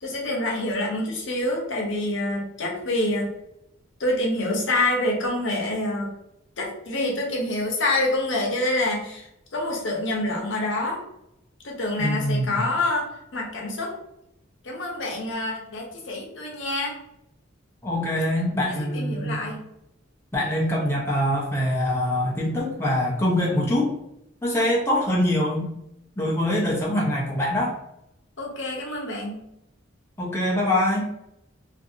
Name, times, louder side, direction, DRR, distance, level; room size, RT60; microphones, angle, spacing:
voice 1, 0.0-3.3 4.0-6.1 6.6-11.0 11.6-14.0 14.6-17.0 18.7-19.6 28.4-29.4, left 1 dB, 70° left, -1 dB, 0.8 m, -27 dB
voice 2, 12.0-12.6 17.8-19.4 20.3-23.9 24.4-25.7 26.2-27.7 30.2-31.1, left 1 dB, 10° left, -4 dB, 0.5 m, -24 dB
2.6 x 2.5 x 2.6 m, 0.82 s
head